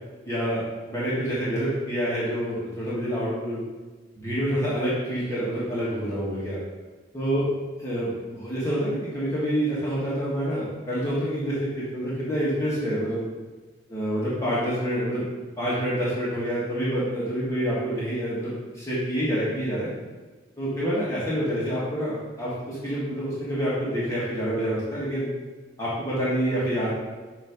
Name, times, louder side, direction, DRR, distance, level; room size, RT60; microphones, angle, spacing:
voice 1, 0.3-3.6 4.2-6.6 7.1-7.4 7.8-13.2 13.9-15.3 15.6-19.9 20.6-25.3 25.8-26.9, equal, 15° left, -9 dB, 1.7 m, -27 dB
7.3 x 3.1 x 5.2 m, 1.3 s
head